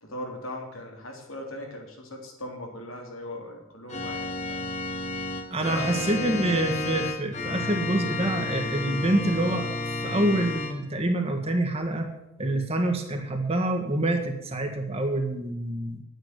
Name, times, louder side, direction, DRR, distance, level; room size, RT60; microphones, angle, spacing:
voice 1, 0.0-4.7 5.7-6.0, left 1 dB, 80° left, 1 dB, 3.4 m, -39 dB
Organ, 3.9-10.7, left 2 dB, 35° left, 1.6 m, -31 dB
voice 2, 5.5-12.1 12.4-16.0, right 1 dB, 30° right, 3 dB, 1.8 m, -26 dB
10.0 x 9.5 x 9.4 m, 0.86 s
head